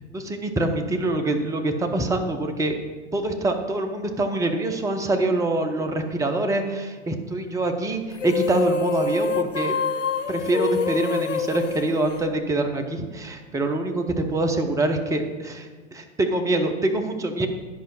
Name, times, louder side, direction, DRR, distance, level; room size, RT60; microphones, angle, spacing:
voice 1, 0.1-2.8 3.1-9.7 10.3-17.5, right 2 dB, 10° right, 5 dB, 0.8 m, -25 dB
sound 1, 8.1-12.8, left 5 dB, 85° left, 0.6 m, -27 dB
11.0 x 5.2 x 5.5 m, 1.4 s
figure-of-eight pair, 90°, 37 cm